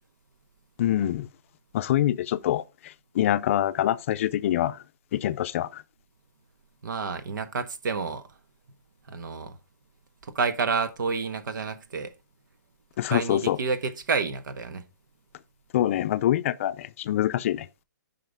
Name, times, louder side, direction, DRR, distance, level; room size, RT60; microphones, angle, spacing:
voice 1, 0.8-1.3 1.7-4.8 5.1-5.8 13.0-13.6 15.7-17.7, left 12 dB, 40° left, 0.5 m, -25 dB
voice 2, 6.8-8.2 9.1-9.6 10.2-12.1 13.1-14.8, right 5 dB, 70° right, 1.3 m, -29 dB
9.2 x 5.7 x 3.5 m
hypercardioid pair, 155°, 11 cm